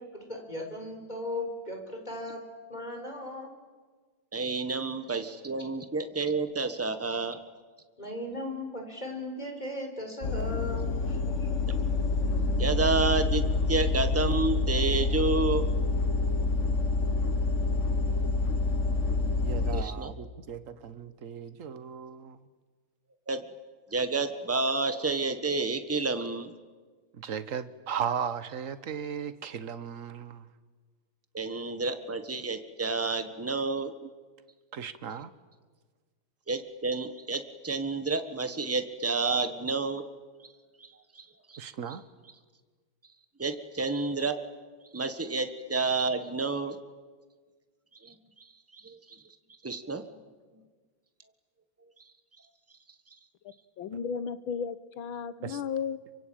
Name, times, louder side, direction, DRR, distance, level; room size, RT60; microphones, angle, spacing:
voice 1, 0.0-2.4 2.7-3.5 8.0-11.5, left 1 dB, 20° left, 4.5 m, -37 dB
voice 2, 4.3-7.4 12.6-15.7 19.7-20.1 23.3-23.4 23.9-26.5 31.3-33.9 36.5-40.0 40.8-40.9 41.1-41.6 43.4-44.4 44.9-46.8 48.0-48.1 48.7-49.2 49.6-50.1 50.5-50.6, right 3 dB, 10° right, 1.0 m, -30 dB
sound 1, 10.2-19.8, left 3 dB, 45° left, 1.2 m, -27 dB
voice 3, 19.4-22.4 27.2-30.5 34.7-35.3 41.6-42.0 55.4-55.6, right 7 dB, 50° right, 1.1 m, -36 dB
voice 4, 53.8-56.0, left 6 dB, 70° left, 1.8 m, -34 dB
27.5 x 24.0 x 8.8 m
omnidirectional pair, 2.3 m